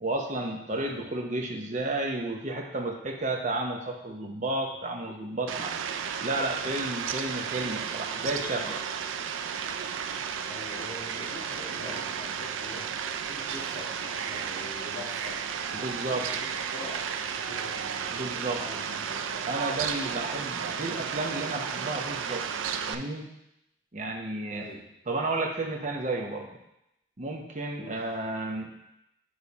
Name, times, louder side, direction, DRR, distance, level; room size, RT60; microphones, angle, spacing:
voice 1, 0.0-5.7 6.2-8.8 15.7-16.3 18.1-18.6 19.5-22.5 22.9-23.3 23.9-24.7 25.1-26.5 27.2-28.7, right 2 dB, 40° right, 1 dB, 0.8 m, -32 dB
voice 2, 0.7-1.0 10.5-19.4 20.3-20.9 24.5-24.8 27.8-28.1, left 1 dB, 50° left, -11 dB, 2.1 m, -45 dB
Fowl, 5.5-23.0, right 7 dB, 85° right, 0.4 m, -33 dB
8.8 x 3.2 x 4.1 m, 0.84 s
head